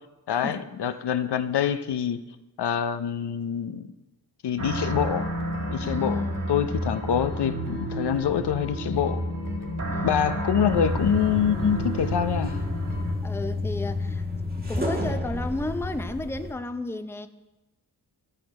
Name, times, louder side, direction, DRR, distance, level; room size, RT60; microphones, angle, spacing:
voice 1, 0.3-2.2 2.6-3.9 4.4-5.3 5.7-9.2 10.0-12.6, left 8 dB, 70° left, 11 dB, 0.6 m, -25 dB
sound 1, 4.6-13.1, equal, 45° right, 2.1 m, -31 dB
voice 2, 5.8-6.8 9.8-10.3 13.2-14.3 14.5-17.3, left 2 dB, 5° left, 9 dB, 0.6 m, -33 dB
sound 2, 10.7-16.5, left 2 dB, 20° right, 1.5 m, -30 dB
12.5 x 6.0 x 4.7 m, 1.1 s
cardioid pair, 50°, 42 cm